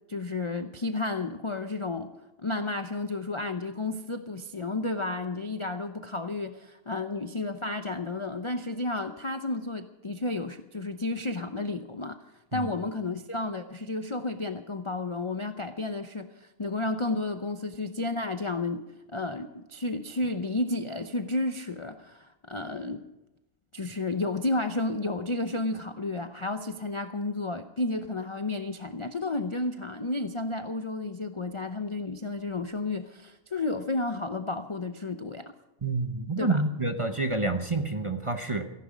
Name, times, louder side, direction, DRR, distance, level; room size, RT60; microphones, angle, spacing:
voice 1, 0.1-2.1 2.4-12.2 12.5-23.0 23.7-35.5 36.4-36.6, left 2 dB, 35° left, 8 dB, 0.5 m, -32 dB
voice 2, 35.8-38.7, right 3 dB, 25° right, 6 dB, 0.8 m, -28 dB
17.5 x 15.0 x 5.2 m, 0.94 s
omnidirectional pair, 1.5 m